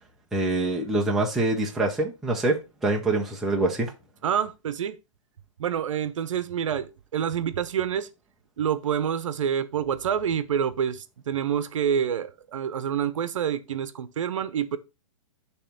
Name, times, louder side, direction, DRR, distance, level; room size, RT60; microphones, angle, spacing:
voice 1, 0.3-3.9, right 2 dB, ahead, 0.4 m, -25 dB
voice 2, 4.2-5.0 5.6-8.1 8.6-14.8, right 8 dB, 65° right, 0.8 m, -27 dB
6.9 x 3.0 x 5.7 m
hypercardioid pair, 170°, 17 cm